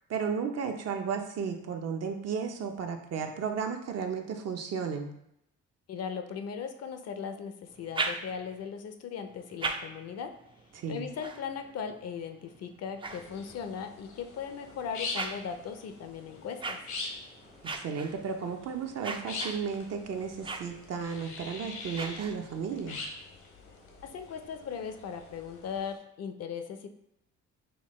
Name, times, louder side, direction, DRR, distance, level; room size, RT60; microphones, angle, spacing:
voice 1, 0.1-5.1 10.7-11.1 17.6-23.0, right 6 dB, 55° right, 4 dB, 0.6 m, -34 dB
voice 2, 5.9-10.4 10.9-16.8 24.0-26.9, left 6 dB, 55° left, 7 dB, 0.5 m, -38 dB
sound 1, 7.7-8.7 9.3-13.9 14.5-22.8, right 3 dB, 20° right, 0.3 m, -41 dB
sound 2, 13.0-26.0, left 3 dB, 75° left, 0.9 m, -44 dB
5.7 x 2.1 x 3.1 m, 0.78 s
cardioid pair, 90°, 30 cm